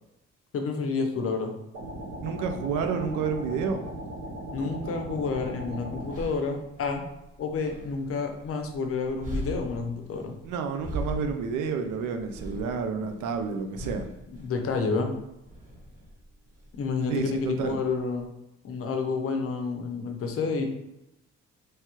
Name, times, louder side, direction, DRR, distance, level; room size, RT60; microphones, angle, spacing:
voice 1, 0.5-1.5 4.5-7.0 7.4-10.3 14.4-15.1 16.8-18.3 18.6-20.7, left 4 dB, 50° left, 4 dB, 0.6 m, -29 dB
sound 1, 1.7-6.2, right 1 dB, 60° right, 0.9 m, -38 dB
voice 2, 2.2-3.8 10.4-14.1 17.1-17.8, right 5 dB, 85° right, 6 dB, 0.5 m, -30 dB
sound 2, 5.2-18.3, right 1 dB, 25° right, 1.0 m, -41 dB
3.2 x 2.2 x 2.9 m, 0.87 s
cardioid pair, 90°, 30 cm